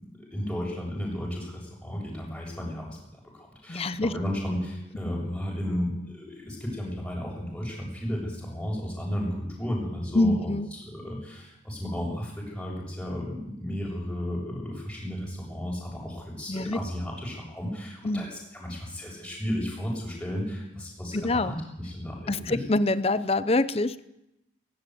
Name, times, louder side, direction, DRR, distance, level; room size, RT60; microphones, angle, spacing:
voice 1, 0.0-3.0 3.3-22.6, equal, 5° left, -3 dB, 7.3 m, -34 dB
voice 2, 3.7-4.1 10.1-10.7 16.5-16.8 18.0-18.3 21.1-21.5 22.3-24.0, left 2 dB, 35° left, 16 dB, 0.7 m, -25 dB
17.0 x 17.0 x 9.5 m, 0.87 s
head